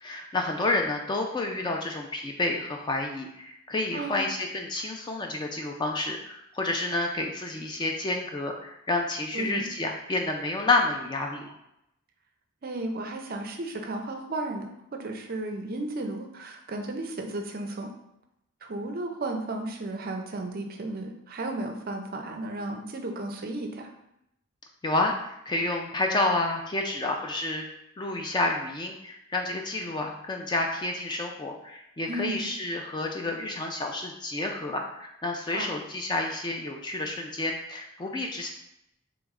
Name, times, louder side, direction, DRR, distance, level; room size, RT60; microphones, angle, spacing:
voice 1, 0.0-11.5 24.8-27.7 28.0-38.5, left 2 dB, 20° left, 2 dB, 0.3 m, -29 dB
voice 2, 3.9-4.3 9.3-9.7 12.6-17.9 18.6-23.9 32.1-32.5 35.5-35.7, right 2 dB, 45° right, 3 dB, 0.5 m, -34 dB
3.4 x 3.0 x 3.6 m, 0.81 s
head